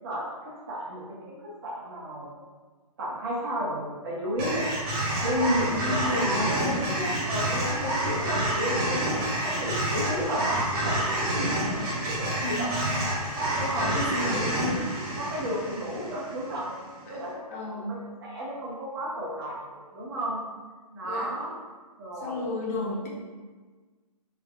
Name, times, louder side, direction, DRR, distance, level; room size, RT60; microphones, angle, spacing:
voice 1, 0.0-2.3 3.0-4.8 5.2-7.6 8.0-12.9 13.5-13.9 14.7-14.8 15.2-16.7 17.1-17.4 18.2-20.4 20.9-21.5 22.0-22.4, equal, 35° right, -6 dB, 1.0 m, -32 dB
sound 1, 4.4-16.7, right 1 dB, 20° right, 0.7 m, -28 dB
voice 2, 5.7-8.2 8.8-9.0 12.4-13.0 13.4-14.9 17.0-17.2 17.5-17.9 21.0-21.3 22.1-23.1, left 1 dB, 25° left, -4 dB, 0.5 m, -33 dB
3.5 x 2.2 x 3.4 m, 1.4 s
hypercardioid pair, 155°, 20 cm